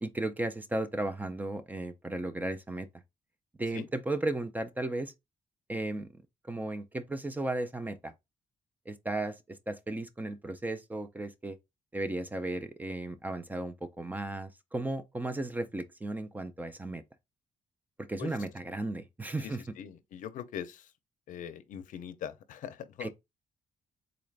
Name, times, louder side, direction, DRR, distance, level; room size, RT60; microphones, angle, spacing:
voice 1, 0.0-2.9 3.6-5.1 5.7-8.1 8.9-11.6 11.9-17.0 18.0-19.6 23.0-23.1, right 2 dB, 10° right, 0.3 m, -35 dB
voice 2, 19.4-20.9 21.3-23.1, left 9 dB, 70° left, 0.5 m, -42 dB
3.9 x 2.3 x 3.2 m
cardioid pair, 150°, 14 cm